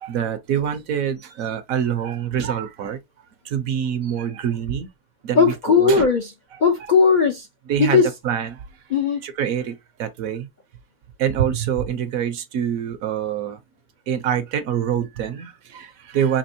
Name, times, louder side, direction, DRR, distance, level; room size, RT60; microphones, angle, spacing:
voice 1, 0.0-3.0 3.4-4.9 5.2-6.1 6.5-6.6 7.7-8.6 9.2-10.5 11.2-13.6 14.1-16.4, right 9 dB, 70° right, 1.1 m, -25 dB
voice 2, 5.3-6.3 6.6-7.5 7.8-8.1 8.9-9.2, left 5 dB, 55° left, 0.5 m, -17 dB
5.2 x 2.9 x 2.7 m
omnidirectional pair, 1.6 m